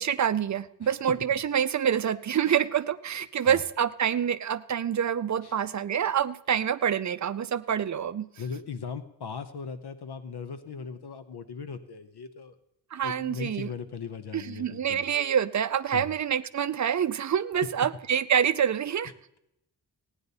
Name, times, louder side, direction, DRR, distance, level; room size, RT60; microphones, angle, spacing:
voice 1, 0.0-8.2 12.9-13.7 14.3-19.1, right 8 dB, 45° right, 13 dB, 0.5 m, -27 dB
voice 2, 8.4-12.5 13.0-15.0 15.9-16.1, left 6 dB, 70° left, 11 dB, 0.8 m, -38 dB
16.5 x 9.7 x 4.1 m, 0.81 s
wide cardioid pair, 150°, 41 cm